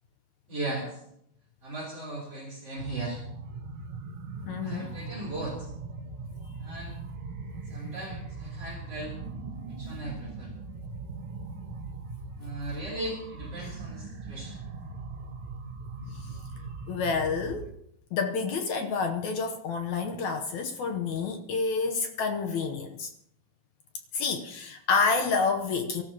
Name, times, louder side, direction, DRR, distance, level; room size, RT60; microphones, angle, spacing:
voice 1, 0.5-1.0 1.6-3.2 4.6-5.7 6.6-7.0 7.7-9.1 9.7-10.5 12.4-14.6, right 2 dB, 40° right, 3.8 m, -37 dB
sound 1, 2.7-17.7, right 3 dB, 70° right, 1.3 m, -40 dB
voice 2, 4.5-5.0 16.1-16.3 16.9-17.7 18.1-23.1 24.1-26.0, left 4 dB, 75° left, 1.7 m, -29 dB
24.5 x 14.0 x 2.9 m
omnidirectional pair, 4.6 m